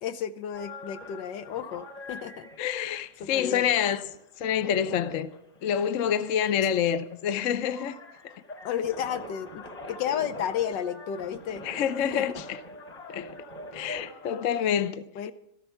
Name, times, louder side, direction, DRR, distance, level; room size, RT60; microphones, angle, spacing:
voice 1, 0.0-2.5 3.2-3.7 6.6-6.8 8.6-11.6 12.1-12.4 15.2-15.3, left 9 dB, 80° left, 1.4 m, -32 dB
sound 1, 0.5-14.5, left 1 dB, 20° left, 3.7 m, -44 dB
voice 2, 2.6-4.0 4.4-5.3 5.6-8.0 8.2-8.3 11.6-12.6 13.1-13.3 13.7-15.0, left 9 dB, 60° left, 0.9 m, -27 dB
14.0 x 14.0 x 5.8 m
omnidirectional pair, 1.9 m